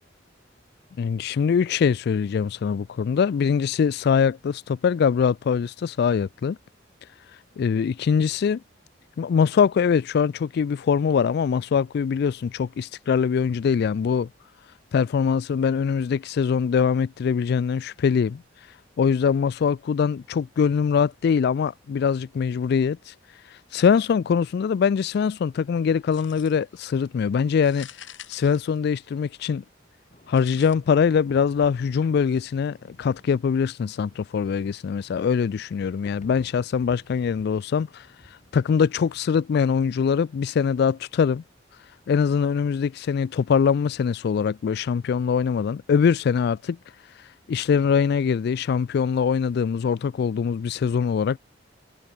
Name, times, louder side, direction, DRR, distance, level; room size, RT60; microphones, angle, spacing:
voice 1, 1.0-6.6 7.6-8.6 9.2-14.3 14.9-18.4 19.0-23.1 23.7-27.9 28.3-29.6 30.3-38.1 38.5-41.4 42.1-46.8 47.5-51.4, left 6 dB, 60° left, 0.3 m, -23 dB
sound 1, 26.1-26.8 27.5-29.3 30.3-30.7, left 10 dB, 80° left, 2.7 m, -45 dB
sound 2, 30.1-39.3, left 1 dB, 40° left, 7.7 m, -54 dB
head